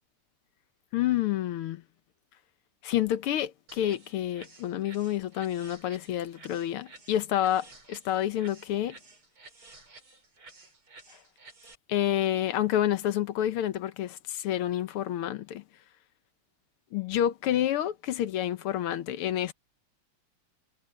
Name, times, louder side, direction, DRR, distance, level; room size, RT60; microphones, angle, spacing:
voice 1, 0.9-1.8 2.8-9.0 11.9-15.6 16.9-19.5, left 11 dB, 90° left, 1.9 m, -29 dB
sound 1, 3.7-11.7, right 3 dB, 75° right, 6.5 m, -53 dB
omnidirectional pair, 2.4 m